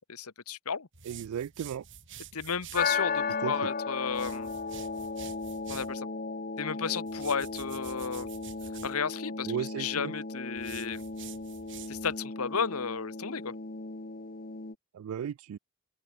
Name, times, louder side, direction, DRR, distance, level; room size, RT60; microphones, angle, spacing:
voice 1, 0.1-0.9 2.3-4.5 5.7-6.1 6.6-8.3 8.8-11.0 11.9-13.5, left 6 dB, 80° left, 1.2 m, -33 dB
sound 1, 0.9-2.9 4.1-6.0 7.1-8.9 10.6-12.2, right 8 dB, 55° right, 4.2 m, -48 dB
voice 2, 1.1-1.8 3.4-3.7 9.4-10.1 14.9-15.6, right 8 dB, 75° right, 0.3 m, -35 dB
sound 2, 2.7-14.7, left 4 dB, 40° left, 1.4 m, -35 dB
open air
head